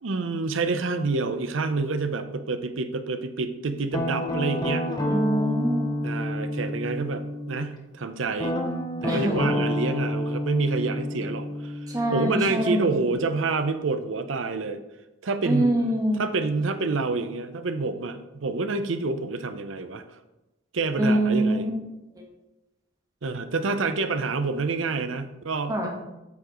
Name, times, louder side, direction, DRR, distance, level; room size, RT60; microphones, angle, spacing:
voice 1, 0.0-4.9 6.0-8.6 9.0-11.7 12.1-14.8 15.2-15.7 16.2-20.0 20.7-21.7 23.2-25.7, right 3 dB, 85° right, 10 dB, 0.6 m, -28 dB
Guitar, 3.9-7.7 8.4-13.1, left 1 dB, 20° left, 0.8 m, -29 dB
voice 2, 5.1-5.9 9.0-9.5 11.9-13.0 15.4-16.2 21.0-21.7 22.1-22.2 25.7-25.9, right 1 dB, 20° right, 1 dB, 1.3 m, -24 dB
8.2 x 7.1 x 3.0 m, 0.98 s
head